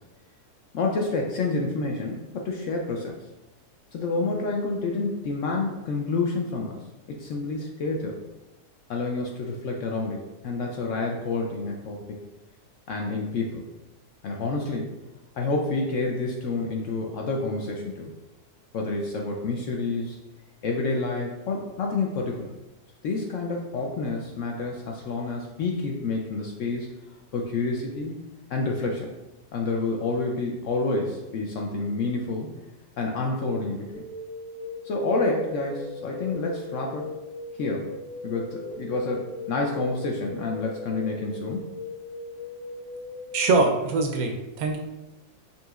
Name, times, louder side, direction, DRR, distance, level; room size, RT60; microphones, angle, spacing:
voice 1, 0.7-3.2 3.9-6.8 7.1-8.2 8.9-12.2 12.9-13.6 14.2-14.9 15.4-18.1 18.7-20.2 20.6-22.6 23.0-26.9 27.3-28.1 28.5-29.1 29.5-32.5 33.0-33.9 34.8-37.1 37.6-37.9 38.2-41.8, left 3 dB, 70° left, 0 dB, 0.8 m, -28 dB
sound 1, 33.9-43.5, left 2 dB, 85° left, 1.5 m, -39 dB
voice 2, 43.3-44.8, right 3 dB, 70° right, 3 dB, 1.0 m, -23 dB
5.4 x 2.8 x 2.3 m, 1.0 s
omnidirectional pair, 1.7 m